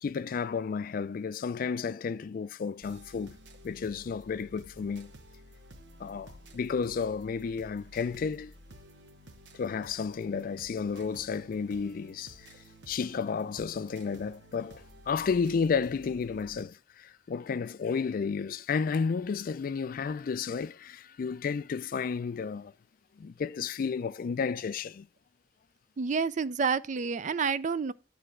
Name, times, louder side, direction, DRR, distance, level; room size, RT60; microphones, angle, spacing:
voice 1, 0.0-3.4 3.6-5.1 6.0-8.5 9.5-12.5 12.9-22.7 23.2-25.1, left 5 dB, 55° left, 0.3 m, -32 dB
sound 1, 2.8-16.6, equal, 85° right, 1.1 m, -53 dB
voice 2, 26.0-27.9, right 5 dB, 45° right, 0.4 m, -29 dB
9.8 x 3.3 x 6.1 m
head